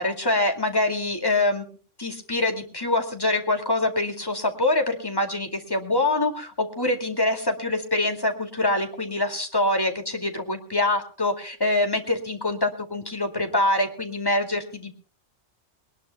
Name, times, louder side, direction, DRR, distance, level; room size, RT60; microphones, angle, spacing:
voice 1, 0.0-15.0, left 2 dB, 20° left, 4 dB, 2.4 m, -25 dB
22.0 x 20.0 x 2.2 m, 0.40 s
omnidirectional pair, 1.3 m